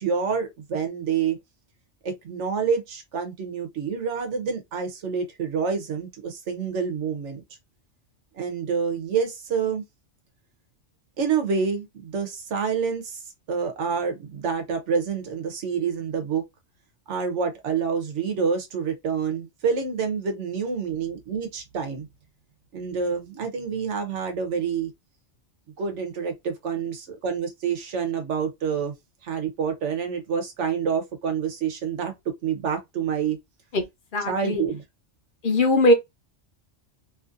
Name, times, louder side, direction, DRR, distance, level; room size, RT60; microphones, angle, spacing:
voice 1, 0.0-1.4 2.0-7.4 8.3-9.8 11.2-13.2 13.5-16.4 17.1-22.1 22.7-24.9 25.8-28.9 29.2-32.1 32.4-33.4 34.3-34.8, right 6 dB, 80° right, 1.1 m, -27 dB
voice 2, 34.1-34.6 35.4-35.9, left 1 dB, 50° left, 0.9 m, -20 dB
3.0 x 2.6 x 2.4 m
omnidirectional pair, 1.2 m